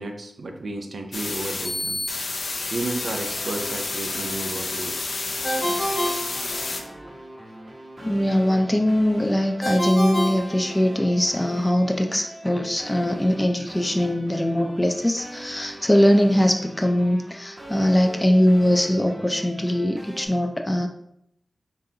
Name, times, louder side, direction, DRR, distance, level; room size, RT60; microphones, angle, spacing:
voice 1, 0.0-2.0 2.7-5.1, right 2 dB, 85° right, 4 dB, 0.5 m, -32 dB
sound 1, 1.1-6.8, left 3 dB, 80° left, 0.5 m, -30 dB
sound 2, 2.9-20.3, right 1 dB, 45° right, 0.9 m, -42 dB
Ringtone, 5.4-7.1 9.6-11.3, equal, 30° left, 0.9 m, -28 dB
voice 2, 8.0-20.9, equal, 15° left, 4 dB, 0.4 m, -21 dB
3.9 x 3.6 x 2.7 m, 0.75 s
wide cardioid pair, 65°, 0 cm